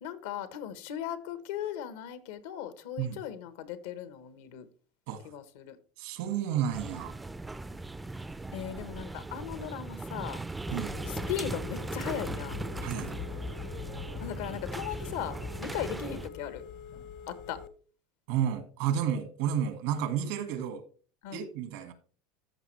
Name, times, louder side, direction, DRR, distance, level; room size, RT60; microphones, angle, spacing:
voice 1, 0.0-4.7 5.2-5.8 8.5-10.4 11.1-12.6 14.2-16.6 17.3-17.6 21.2-21.5, left 9 dB, 85° left, 1.0 m, -38 dB
voice 2, 6.0-7.2 10.7-10.9 12.8-13.1 18.3-20.8 21.3-21.9, right 9 dB, 75° right, 1.7 m, -31 dB
sound 1, 6.7-16.3, right 2 dB, 10° right, 0.4 m, -38 dB
Telephone, 10.7-17.7, left 8 dB, 60° left, 0.8 m, -43 dB
14.0 x 5.2 x 3.2 m
supercardioid pair, 130°, 0 cm